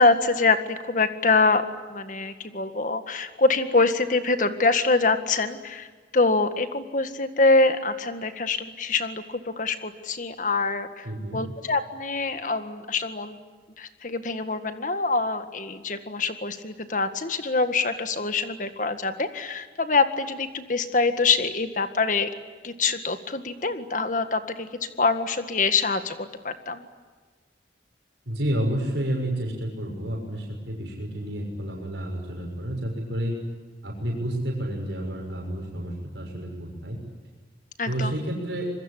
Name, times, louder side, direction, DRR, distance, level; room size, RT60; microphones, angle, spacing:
voice 1, 0.0-1.6 1.9-5.9 6.1-13.4 13.8-22.3 22.6-26.9 37.8-38.1, left 3 dB, 45° left, 9 dB, 1.8 m, -24 dB
voice 2, 11.0-11.4 28.3-33.3 33.8-37.0 37.8-38.7, right 1 dB, 80° right, 0 dB, 6.5 m, -30 dB
26.0 x 22.0 x 10.0 m, 1.5 s
head